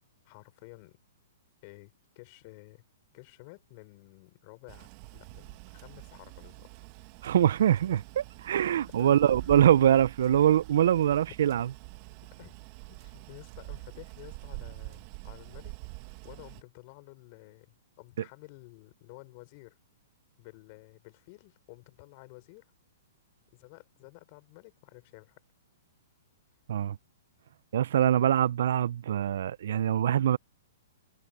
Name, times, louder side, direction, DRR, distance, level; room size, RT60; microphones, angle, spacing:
voice 1, 0.2-1.0 1.6-2.8 3.1-6.7 9.0-9.5 11.3-11.4 12.4-12.6 12.9-15.8 16.2-19.8 20.4-22.7 23.5-25.4, left 28 dB, 45° left, 5.1 m, -52 dB
sound 1, 4.7-16.6, right 25 dB, 40° right, 1.4 m, -46 dB
voice 2, 7.2-11.7 26.7-27.0 27.7-30.4, right 10 dB, 65° right, 0.5 m, -24 dB
hypercardioid pair, 135°, 0 cm